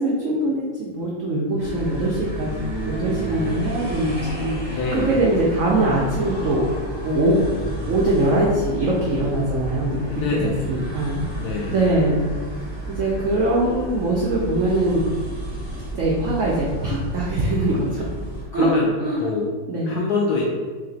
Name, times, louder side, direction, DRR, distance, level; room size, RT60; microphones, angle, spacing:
voice 1, 0.0-2.6 2.8-6.6 7.0-10.0 10.3-11.2 11.7-12.2 13.0-15.1 15.9-18.0 18.5-18.7 19.0-19.3 19.7-20.0, right 1 dB, 75° right, -4 dB, 0.7 m, -22 dB
sound 1, 1.6-18.4, right 2 dB, 30° right, 0.4 m, -31 dB
voice 2, 4.7-5.2 10.1-10.7 11.3-11.8 18.5-18.9 19.2-19.6 19.9-20.5, left 4 dB, 75° left, -2 dB, 0.9 m, -25 dB
3.3 x 3.3 x 3.8 m, 1.4 s
omnidirectional pair, 2.1 m